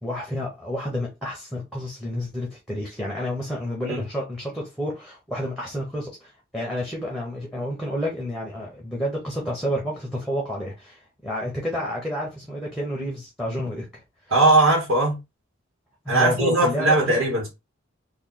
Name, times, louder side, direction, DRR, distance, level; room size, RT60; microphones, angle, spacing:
voice 1, 0.0-14.0 16.0-17.3, equal, ahead, 0.9 m, -30 dB
voice 2, 14.3-15.2 16.1-17.5, right 2 dB, 80° right, 1.4 m, -19 dB
3.2 x 2.4 x 3.8 m
head